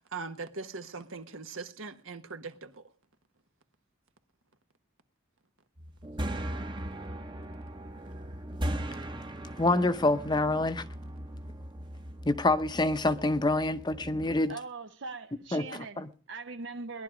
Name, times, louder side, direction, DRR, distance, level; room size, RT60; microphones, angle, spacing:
voice 1, 0.0-2.8, right 4 dB, 80° right, 1.4 m, -41 dB
sound 1, 5.8-14.4, right 1 dB, 25° right, 0.9 m, -38 dB
voice 2, 9.6-10.9 12.2-14.6 15.5-16.1, left 2 dB, 20° left, 0.7 m, -27 dB
voice 3, 14.5-17.0, right 3 dB, 60° right, 0.6 m, -41 dB
18.5 x 11.5 x 5.0 m
head